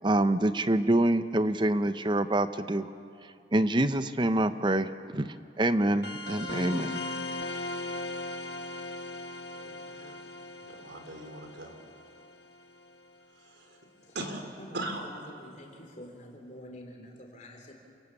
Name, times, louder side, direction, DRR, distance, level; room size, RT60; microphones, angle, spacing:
voice 1, 0.0-2.9 3.5-7.0, right 1 dB, 25° right, 12 dB, 0.7 m, -26 dB
sound 1, 6.0-13.1, left 2 dB, 70° left, 1.6 m, -38 dB
voice 2, 9.5-10.2 10.6-11.8 13.4-13.8 14.1-15.2, right 1 dB, 80° right, 4 dB, 3.3 m, -40 dB
voice 3, 14.6-17.7, left 1 dB, 40° left, 2 dB, 3.5 m, -47 dB
29.0 x 18.0 x 7.2 m, 2.5 s
head